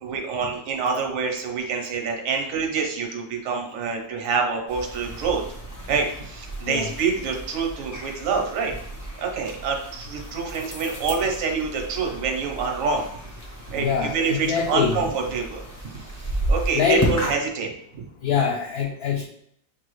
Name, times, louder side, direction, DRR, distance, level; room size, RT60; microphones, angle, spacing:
voice 1, 0.0-5.4 5.9-8.7 9.2-13.2 13.7-18.0, right 5 dB, 55° right, 2 dB, 1.1 m, -27 dB
sound 1, 4.7-17.3, right 1 dB, 15° left, 0.6 m, -33 dB
voice 2, 13.8-15.0 16.7-17.1 18.2-19.3, left 6 dB, 70° left, 0 dB, 1.0 m, -24 dB
6.1 x 2.3 x 3.1 m, 0.69 s
omnidirectional pair, 1.9 m